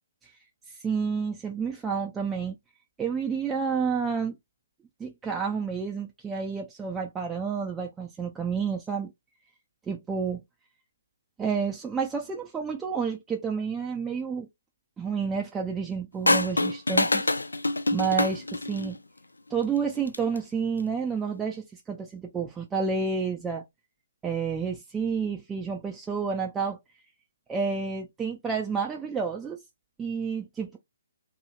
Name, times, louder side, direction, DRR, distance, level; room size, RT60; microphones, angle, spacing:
voice 1, 0.8-2.6 3.0-4.4 5.0-9.1 9.9-10.4 11.4-14.5 15.0-17.3 17.9-19.0 19.5-23.6 24.2-26.8 27.5-29.6 30.0-30.8, right 5 dB, 10° right, 0.4 m, -30 dB
sound 1, 16.3-19.0 20.0-20.4, left 2 dB, 75° left, 0.3 m, -25 dB
2.7 x 2.6 x 2.3 m
figure-of-eight pair, 130°, 0 cm